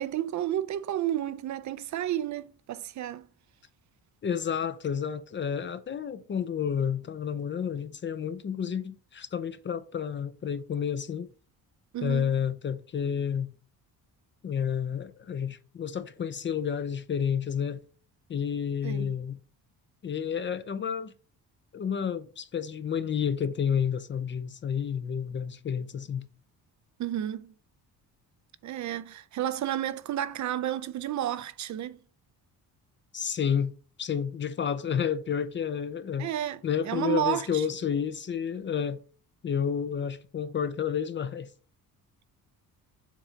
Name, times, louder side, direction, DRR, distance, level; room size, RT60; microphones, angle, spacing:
voice 1, 0.0-3.3 11.9-12.3 18.8-19.1 27.0-27.5 28.6-32.0 36.2-37.6, right 12 dB, 50° right, 0.5 m, -31 dB
voice 2, 4.2-11.3 12.0-13.5 14.4-17.8 18.3-19.4 20.0-21.1 21.7-26.3 33.1-36.3 36.6-39.0 39.4-41.5, left 7 dB, 30° left, 0.5 m, -30 dB
7.4 x 2.6 x 5.0 m
cardioid pair, 105°, 37 cm